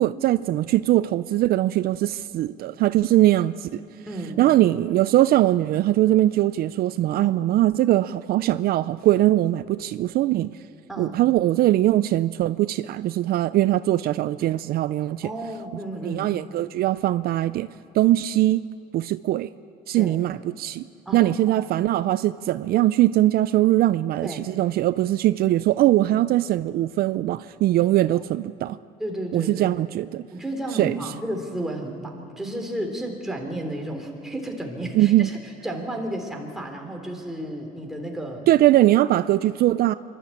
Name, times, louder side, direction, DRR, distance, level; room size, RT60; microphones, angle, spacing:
voice 1, 0.0-3.8 4.4-10.5 11.0-15.3 16.0-18.6 18.9-19.5 19.9-20.9 21.1-28.8 29.3-30.3 30.7-31.0 34.9-35.3 38.5-39.9, right 14 dB, 65° right, 15 dB, 0.4 m, -21 dB
voice 2, 4.1-4.4 7.1-7.3 10.9-11.2 15.2-16.3 19.9-20.2 21.1-21.7 24.2-24.5 27.8-28.2 29.0-29.7 30.3-35.4 35.6-38.5, right 1 dB, ahead, 1 dB, 3.3 m, -32 dB
25.5 x 12.5 x 8.5 m, 2.4 s
cardioid pair, 110°, 17 cm